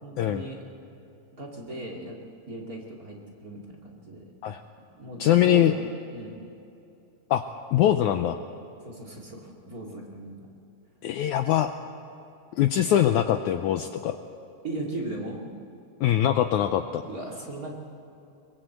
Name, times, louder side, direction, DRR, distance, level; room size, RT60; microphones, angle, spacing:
voice 1, 0.0-0.6 1.4-2.2 2.5-4.3 5.0-5.8 6.1-6.3 8.8-10.5 12.8-12.9 14.6-15.4 17.0-17.7, right 2 dB, 30° right, 0 dB, 2.4 m, -37 dB
voice 2, 5.2-5.7 7.3-7.4 7.7-8.4 11.0-11.7 12.6-14.2 16.0-17.0, left 11 dB, 80° left, 8 dB, 1.8 m, -22 dB
23.0 x 22.5 x 7.9 m, 2.8 s
omnidirectional pair, 4.1 m